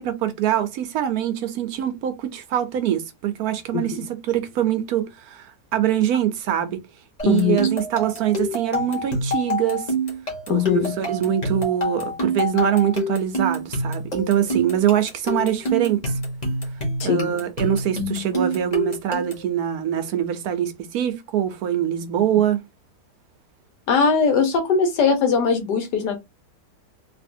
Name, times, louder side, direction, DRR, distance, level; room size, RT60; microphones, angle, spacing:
voice 1, 0.0-6.8 7.2-9.9 10.5-16.1 17.0-22.6, right 10 dB, 70° right, 1.1 m, -23 dB
sound 1, 7.2-19.5, equal, 25° left, 1.2 m, -27 dB
voice 2, 7.3-7.7 10.5-11.0 17.0-17.3 23.9-26.2, left 5 dB, 80° left, 1.4 m, -20 dB
3.4 x 2.8 x 2.6 m
omnidirectional pair, 1.8 m